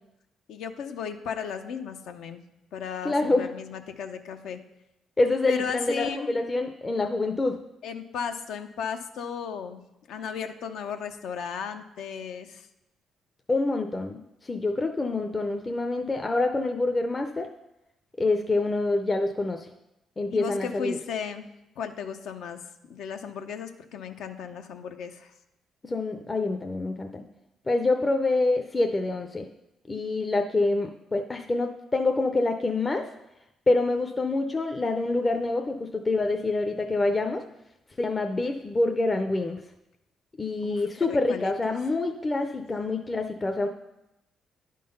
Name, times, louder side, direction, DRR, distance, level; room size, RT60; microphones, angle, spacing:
voice 1, 0.5-2.4 2.7-4.6 5.5-6.3 7.8-9.8 10.1-12.7 20.3-21.4 21.8-22.6 22.9-25.3 40.6-41.5, left 7 dB, 80° left, 7 dB, 0.6 m, -35 dB
voice 2, 3.0-3.5 5.2-7.6 13.5-17.5 18.2-19.7 20.2-21.0 25.8-27.2 27.7-29.5 29.9-33.0 33.7-37.4 38.0-39.6 40.4-43.7, left 2 dB, 25° left, 4 dB, 0.5 m, -26 dB
10.0 x 3.8 x 5.4 m, 0.90 s
cardioid pair, 90°, 0 cm